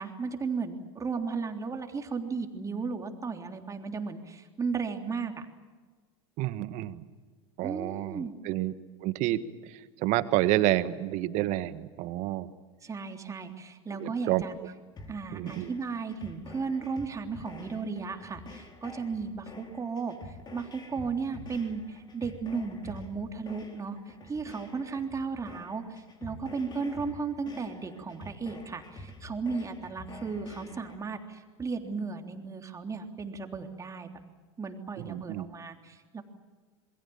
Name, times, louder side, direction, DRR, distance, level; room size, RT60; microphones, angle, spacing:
voice 1, 0.0-5.4 7.6-8.4 12.8-14.5 15.1-34.1 34.6-36.2, right 5 dB, 20° right, 4 dB, 3.5 m, -35 dB
voice 2, 6.4-7.0 7.6-8.7 9.0-9.4 10.0-12.5 14.0-14.4 15.3-15.7 35.0-35.5, right 15 dB, 55° right, 12 dB, 1.6 m, -29 dB
sound 1, 15.0-31.0, left 2 dB, 30° left, 4.6 m, -47 dB
27.5 x 22.0 x 7.2 m, 1.4 s
hypercardioid pair, 90°, 15 cm